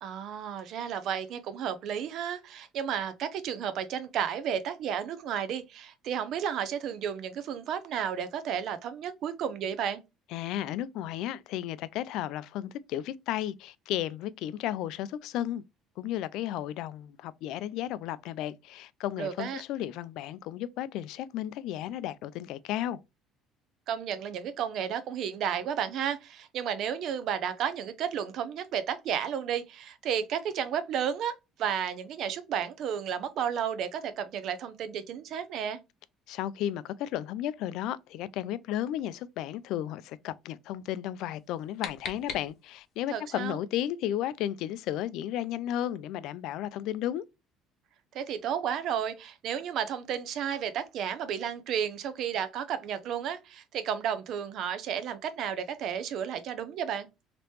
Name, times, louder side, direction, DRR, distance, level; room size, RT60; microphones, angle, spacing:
voice 1, 0.0-10.0 19.2-19.6 23.9-35.8 43.1-43.6 48.1-57.1, right 8 dB, 60° right, 0.6 m, -32 dB
voice 2, 10.3-15.6 16.0-23.0 36.3-47.2, left 12 dB, 75° left, 0.3 m, -34 dB
sound 1, 41.3-43.0, left 6 dB, 55° left, 0.8 m, -41 dB
3.2 x 2.9 x 3.0 m
cardioid pair, 105°, 0 cm